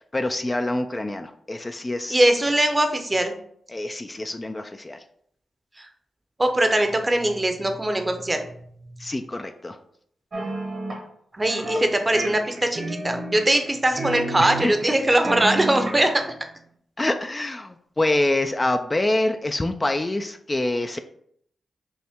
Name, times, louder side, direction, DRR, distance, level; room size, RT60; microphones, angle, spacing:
voice 1, 0.1-2.3 3.7-5.0 9.0-9.8 14.4-14.7 17.0-21.0, left 2 dB, 30° left, 7 dB, 0.3 m, -26 dB
voice 2, 2.1-3.3 6.4-8.4 11.3-16.2, right 1 dB, 25° right, 6 dB, 0.7 m, -21 dB
sound 1, 10.3-11.0 11.5-11.8 12.1-13.7 14.0-14.9 15.2-16.2, right 1 dB, 60° right, 1.2 m, -30 dB
5.4 x 2.1 x 3.5 m, 0.67 s
supercardioid pair, 45°, 0 cm